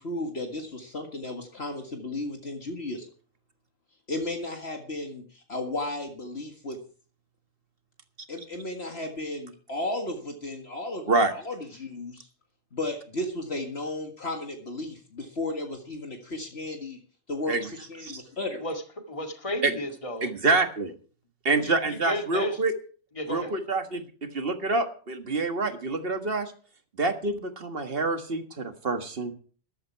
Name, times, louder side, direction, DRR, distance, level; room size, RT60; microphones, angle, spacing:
voice 1, 0.0-3.1 4.1-6.8 8.3-12.3 12.7-17.0 17.3-18.6, left 2 dB, 55° left, 3 dB, 2.1 m, -34 dB
voice 2, 19.1-20.3 21.5-22.6 23.2-23.5, left 1 dB, 25° left, 4 dB, 2.1 m, -33 dB
voice 3, 20.2-20.9 21.4-22.7 23.3-26.5 27.0-29.3, right 3 dB, 50° right, 7 dB, 1.8 m, -27 dB
14.5 x 11.5 x 4.7 m, 0.41 s
omnidirectional pair, 1.3 m